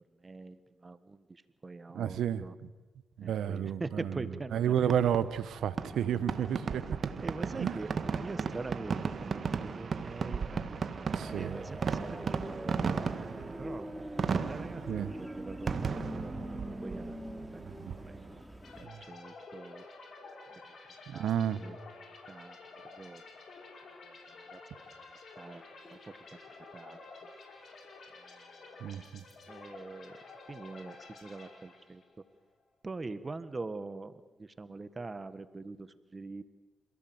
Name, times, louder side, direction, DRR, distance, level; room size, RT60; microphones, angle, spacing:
voice 1, 0.2-2.5 3.2-4.7 7.2-12.4 12.9-13.1 13.6-13.9 14.5-15.8 16.1-16.3 16.8-17.6 18.1-18.2 18.8-19.8 21.1-21.3 21.6-21.8 22.3-22.6 22.9-23.2 24.5-24.6 25.4-25.6 25.9-26.4 26.7-27.0 28.3-28.4 29.5-30.2 30.5-32.0 32.8-36.4, right 3 dB, 35° right, 12 dB, 1.5 m, -43 dB
voice 2, 1.9-2.4 3.2-7.0 7.4-7.8 11.1-11.6 14.8-15.1 17.8-17.9 18.8-19.0 21.1-21.6 28.8-29.2, right 9 dB, 75° right, 15 dB, 1.1 m, -32 dB
Fireworks, 4.8-18.4, right 5 dB, 55° right, 1.8 m, -36 dB
sound 1, 11.1-18.9, equal, ahead, 3.2 m, -43 dB
sound 2, 18.6-32.2, left 3 dB, 65° left, 5.3 m, -51 dB
28.0 x 17.0 x 8.0 m, 1.2 s
supercardioid pair, 50°, 0 cm